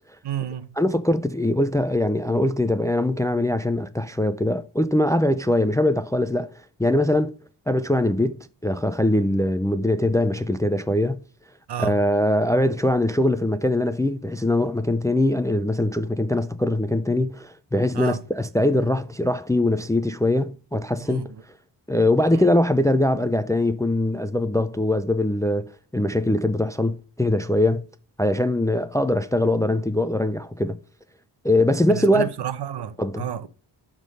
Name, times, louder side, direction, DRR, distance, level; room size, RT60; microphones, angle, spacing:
voice 1, 0.2-0.7 11.7-12.0 17.9-18.2 21.1-21.3 22.3-22.4 31.9-33.5, right 9 dB, 70° right, 0.8 m, -30 dB
voice 2, 0.8-6.5 6.8-7.3 7.7-11.2 11.8-21.3 21.9-27.9 28.2-30.8 31.4-32.3 33.0-33.3, left 1 dB, 10° left, 0.3 m, -22 dB
11.5 x 3.8 x 5.2 m
wide cardioid pair, 150°, 42 cm